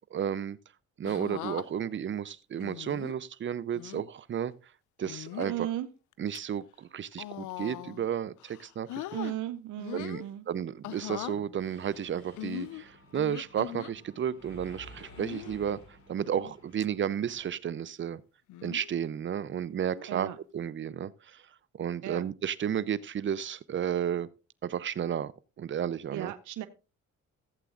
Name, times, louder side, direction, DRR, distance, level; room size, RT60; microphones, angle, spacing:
voice 1, 0.1-0.6 1.0-4.5 5.0-5.7 6.2-9.0 9.9-18.2 18.6-21.4 21.8-24.3 24.6-25.3 25.6-26.3, right 9 dB, 40° right, 0.5 m, -33 dB
sound 1, 1.0-1.7 2.6-3.2 3.7-4.0 5.0-5.6 6.1-6.4 7.1-8.1 8.4-9.4 9.8-10.3 10.8-11.4 12.4-13.9 15.2-15.6 16.2-16.5 16.8-16.9 18.5-18.9 20.0-20.2, left 14 dB, 80° left, 0.5 m, -40 dB
voice 2, 5.5-5.9 9.1-10.5 20.1-20.4 22.0-22.2 26.1-26.7, right 13 dB, 80° right, 0.7 m, -35 dB
Mechanisms, 11.6-17.5, left 1 dB, 65° left, 4.8 m, -53 dB
15.0 x 8.1 x 2.4 m
cardioid pair, 90°, 30 cm